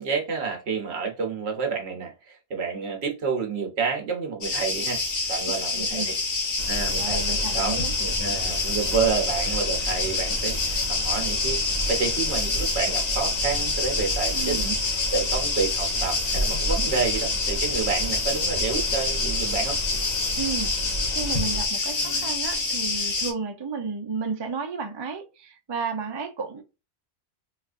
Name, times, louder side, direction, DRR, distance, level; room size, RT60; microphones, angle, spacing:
voice 1, 0.0-5.0 5.3-6.2 6.7-11.6 11.9-14.8 15.1-19.8, right 5 dB, 70° right, 1.2 m, -29 dB
sound 1, 4.4-23.3, left 3 dB, 70° left, 1.3 m, -27 dB
voice 2, 5.7-6.1 7.0-7.9 14.3-14.8 20.4-20.7 21.1-26.6, right 5 dB, 40° right, 0.4 m, -32 dB
sound 2, 6.6-21.7, equal, 40° left, 0.8 m, -33 dB
4.2 x 2.5 x 2.4 m
omnidirectional pair, 1.2 m